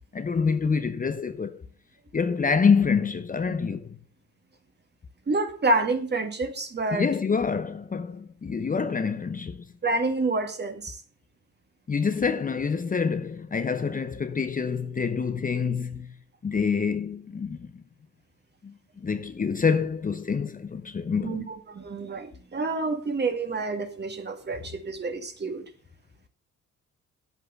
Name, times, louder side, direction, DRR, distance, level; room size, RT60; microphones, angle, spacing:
voice 1, 0.1-1.6 2.1-3.9 6.9-9.7 11.9-16.1 16.4-17.8 18.6-18.7 19.0-21.5, left 5 dB, 25° left, 0.8 m, -26 dB
voice 2, 5.3-7.1 9.8-11.0 21.2-25.6, right 3 dB, 35° right, 2.2 m, -28 dB
8.6 x 8.3 x 7.0 m
cardioid pair, 90°, 30 cm